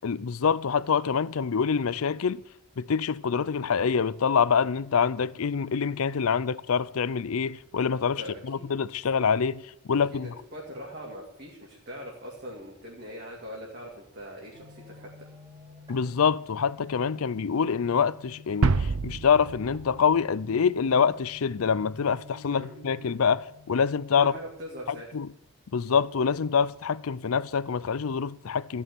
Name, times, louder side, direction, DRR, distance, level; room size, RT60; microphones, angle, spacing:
voice 1, 0.0-2.4 2.8-8.2 8.5-9.6 9.9-10.3 15.9-24.3 25.1-25.3 25.7-28.8, left 6 dB, 70° left, 0.5 m, -25 dB
voice 2, 8.2-8.7 10.1-15.3 22.5-22.7 24.1-25.1, equal, 45° right, 2.4 m, -42 dB
sound 1, 14.5-24.4, left 3 dB, 20° right, 3.0 m, -50 dB
sound 2, 18.6-20.7, right 4 dB, 75° right, 0.6 m, -27 dB
14.5 x 6.3 x 9.4 m
head